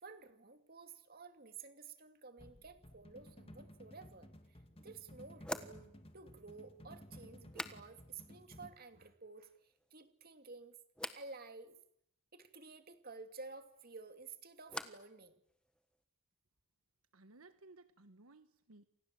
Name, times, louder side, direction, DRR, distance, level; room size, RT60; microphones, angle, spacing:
voice 1, 0.0-10.8 11.2-11.8 12.3-15.4, right 4 dB, 45° right, 8 dB, 2.6 m, -53 dB
sound 1, 2.4-8.7, equal, 25° left, 2.2 m, -56 dB
sound 2, 4.2-4.3 5.4-8.3 8.5-9.1 9.5-10.1 10.9-11.3 13.7-15.2 15.4-16.0, left 1 dB, 5° left, 1.5 m, -49 dB
voice 2, 17.1-18.9, right 2 dB, 80° right, 11 dB, 1.4 m, -60 dB
29.5 x 26.5 x 7.7 m, 0.73 s
head